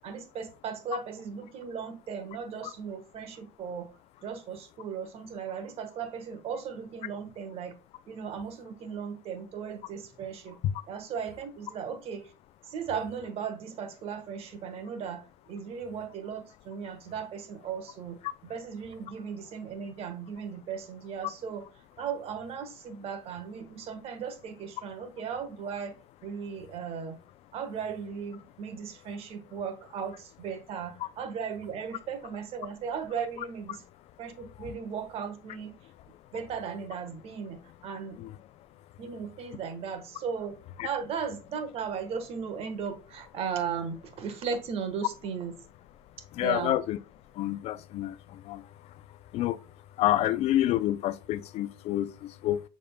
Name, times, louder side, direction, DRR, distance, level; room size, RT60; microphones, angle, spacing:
voice 1, 0.0-3.9 4.2-7.7 8.1-10.6 10.9-12.3 12.6-21.6 22.0-26.0 26.2-27.2 27.5-33.8 34.2-35.7 36.3-38.2 39.0-40.6 40.8-45.5 46.4-46.8, right 6 dB, 55° right, 1.3 m, -37 dB
voice 2, 46.3-47.0 47.4-48.1 48.5-48.6 49.3-49.6 50.0-52.6, left 13 dB, 60° left, 0.4 m, -28 dB
6.6 x 3.6 x 2.2 m
supercardioid pair, 85°, 12 cm